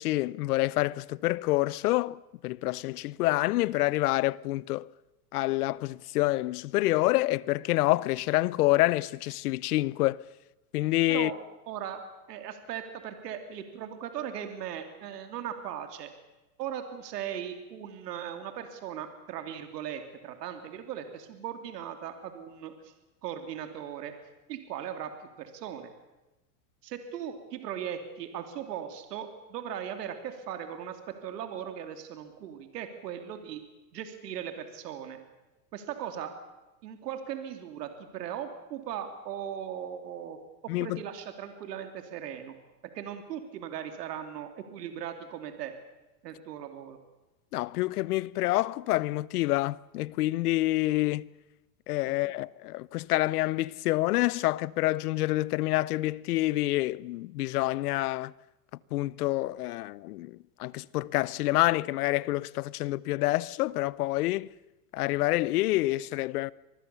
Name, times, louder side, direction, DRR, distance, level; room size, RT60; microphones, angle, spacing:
voice 1, 0.0-4.9 5.3-10.2 10.7-11.3 40.7-41.0 47.5-51.3 51.9-58.3 58.9-64.5 64.9-66.5, left 18 dB, 70° left, 0.8 m, -27 dB
voice 2, 11.7-12.0 12.3-16.1 16.6-22.9 23.2-24.1 24.5-25.1 25.4-25.9 26.8-33.6 33.9-35.2 35.7-36.3 36.8-40.4 40.8-42.5 42.9-45.7 46.2-47.0 52.0-52.4, right 9 dB, 80° right, 3.0 m, -38 dB
26.0 x 20.5 x 6.9 m
supercardioid pair, 145°, 48 cm